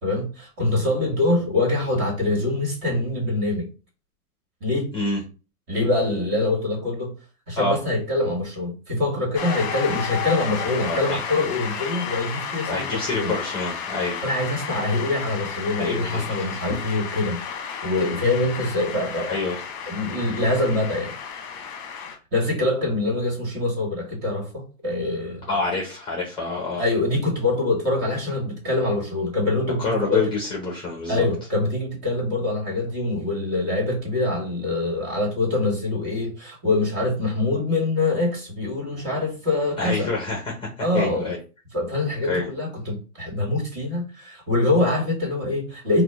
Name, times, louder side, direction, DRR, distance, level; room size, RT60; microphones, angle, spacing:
voice 1, 0.0-3.7 4.6-4.9 5.7-7.1 7.5-13.3 14.2-19.4 19.9-21.1 22.3-25.5 26.8-30.3 31.1-40.1 40.8-41.3 41.7-46.0, left 2 dB, 35° right, 1.9 m, -24 dB
Shout / Cheering / Applause, 9.4-22.2, left 7 dB, 30° left, 1.0 m, -32 dB
voice 2, 10.6-11.2 12.7-14.2 15.8-16.6 19.3-19.6 25.5-26.8 29.8-31.3 39.8-41.4 42.2-42.5, left 3 dB, 10° left, 0.7 m, -27 dB
4.3 x 2.3 x 3.4 m
hypercardioid pair, 145°, 44 cm